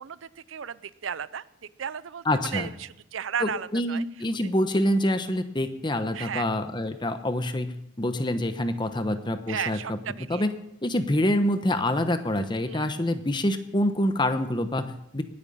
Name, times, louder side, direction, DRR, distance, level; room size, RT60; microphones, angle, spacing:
voice 1, 0.0-1.4 1.8-4.0 6.1-6.5 9.5-10.4 12.7-12.9, right 8 dB, 85° right, 17 dB, 0.5 m, -34 dB
voice 2, 2.2-2.7 3.4-10.0 10.3-10.5 10.8-15.2, left 1 dB, 25° left, 9 dB, 1.0 m, -26 dB
18.5 x 8.7 x 5.6 m, 0.81 s
head